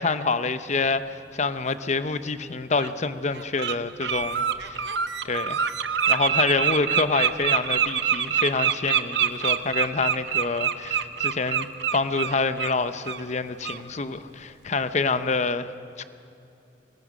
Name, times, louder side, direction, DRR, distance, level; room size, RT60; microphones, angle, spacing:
voice 1, 0.0-4.9 5.2-5.7 6.1-15.7 16.0-16.1, left 4 dB, 40° left, 11 dB, 0.8 m, -27 dB
Bird, 1.9-2.0 2.8-2.9 3.3-3.7 4.0-12.7 13.0-13.2 13.6-13.8, right 8 dB, 70° right, 0.9 m, -25 dB
25.0 x 20.0 x 6.2 m, 2.8 s
head